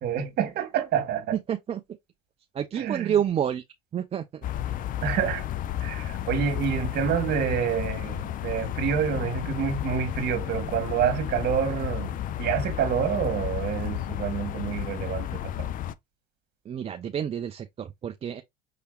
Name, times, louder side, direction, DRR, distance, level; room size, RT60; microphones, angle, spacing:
voice 1, 0.0-1.4 2.7-3.2 5.0-5.4 5.8-15.7, right 8 dB, 50° right, 1.6 m, -28 dB
voice 2, 1.5-1.8 2.5-3.6 3.9-4.2 16.7-18.4, right 9 dB, 30° right, 0.5 m, -29 dB
sound 1, 4.4-15.9, left 11 dB, 40° left, 0.5 m, -32 dB
5.7 x 3.4 x 2.3 m
hypercardioid pair, 85°, 21 cm